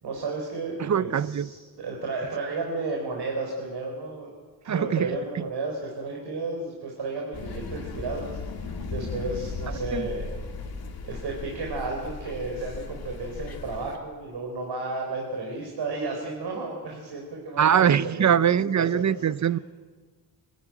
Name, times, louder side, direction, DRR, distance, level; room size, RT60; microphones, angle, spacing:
voice 1, 0.0-4.3 4.6-10.3 11.0-18.4 18.8-19.1 19.4-19.5, right 3 dB, 90° right, 4.0 m, -33 dB
voice 2, 0.8-1.5 4.7-5.4 9.7-10.1 17.6-19.6, right 8 dB, 45° right, 0.6 m, -23 dB
sound 1, 7.3-14.0, left 4 dB, 60° left, 2.2 m, -36 dB
26.0 x 13.5 x 9.3 m
wide cardioid pair, 115°, 40 cm